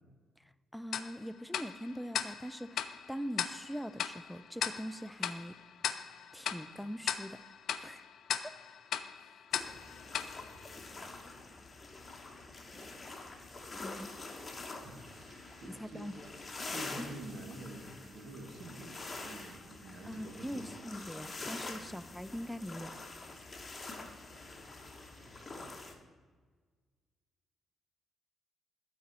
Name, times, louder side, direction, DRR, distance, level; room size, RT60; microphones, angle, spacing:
voice 1, 0.7-5.6 6.3-7.4 7.8-8.1 13.8-14.1 15.8-16.1 17.0-17.1 20.0-22.9, equal, ahead, 14 dB, 0.3 m, -42 dB
Tick-tock, 0.9-11.4, left 8 dB, 70° left, 0.4 m, -39 dB
sound 1, 9.5-25.9, left 3 dB, 25° left, 1.0 m, -46 dB
voice 2, 10.4-11.1 14.8-16.1 16.7-20.7 21.7-22.0 25.2-25.8, right 1 dB, 55° right, 3 dB, 1.4 m, -49 dB
sound 2, 12.1-25.8, right 1 dB, 35° right, 2.3 m, -65 dB
12.0 x 4.2 x 4.0 m, 1.5 s
cardioid pair, 90°, 0 cm